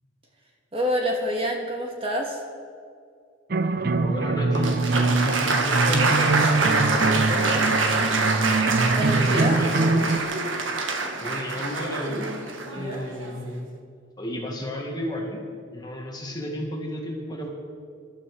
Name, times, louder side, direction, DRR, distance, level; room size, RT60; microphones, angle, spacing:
voice 1, 0.7-2.4 6.9-7.7 8.9-9.6 12.7-13.1, equal, 30° right, 0 dB, 2.0 m, -28 dB
sound 1, 3.5-10.2, right 3 dB, 50° right, 0.6 m, -23 dB
voice 2, 3.9-6.2 9.3-10.2 11.2-12.3 12.7-13.7 14.2-15.4 15.7-17.5, equal, 20° left, 0 dB, 1.9 m, -32 dB
Applause, 4.6-13.5, right 3 dB, 80° right, 1.5 m, -25 dB
24.0 x 13.0 x 4.8 m, 2.2 s
head